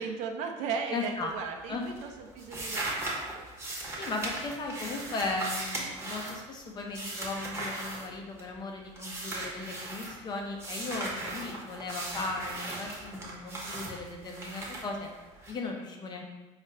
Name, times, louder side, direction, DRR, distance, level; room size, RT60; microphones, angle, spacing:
voice 1, 0.0-3.5, right 5 dB, 70° right, 3 dB, 0.5 m, -36 dB
voice 2, 0.9-1.3 1.7-1.8 4.0-15.1 15.5-16.2, left 3 dB, 35° left, 1 dB, 0.6 m, -37 dB
sound 1, 1.1-1.6 1.8-8.6 9.0-10.1 10.6-15.5, right 2 dB, 20° right, 0.9 m, -38 dB
4.5 x 2.4 x 3.2 m, 1.1 s
cardioid pair, 135°, 13 cm